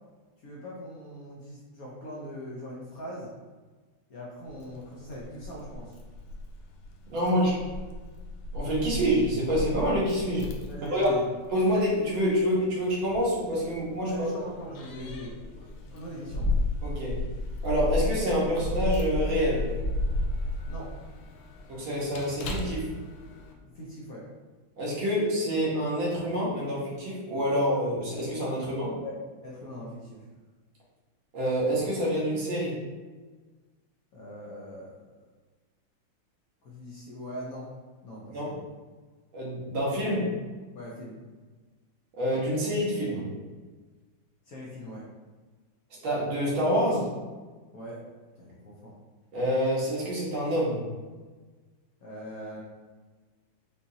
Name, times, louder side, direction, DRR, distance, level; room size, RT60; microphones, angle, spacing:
voice 1, 0.4-3.3 4.1-6.0 7.2-7.6 10.7-11.2 14.1-16.5 20.7-21.0 23.6-24.3 29.0-29.1 29.4-30.3 34.1-35.0 36.6-37.7 38.0-38.6 40.7-41.2 44.5-45.0 47.7-48.0 48.3-48.9 52.0-52.6, equal, 60° left, -5 dB, 1.0 m, -41 dB
Keys jangling, 4.5-23.5, left 2 dB, 85° left, 1.4 m, -34 dB
voice 2, 7.1-7.5 8.5-10.5 10.9-11.1 11.5-14.3 16.8-17.2 17.6-19.6 21.7-22.9 24.8-28.9 31.3-32.8 38.3-38.5 39.3-40.3 42.2-43.2 46.0-47.1 49.3-50.8, equal, 85° right, -6 dB, 2.1 m, -27 dB
5.3 x 2.9 x 2.7 m, 1.3 s
omnidirectional pair, 2.2 m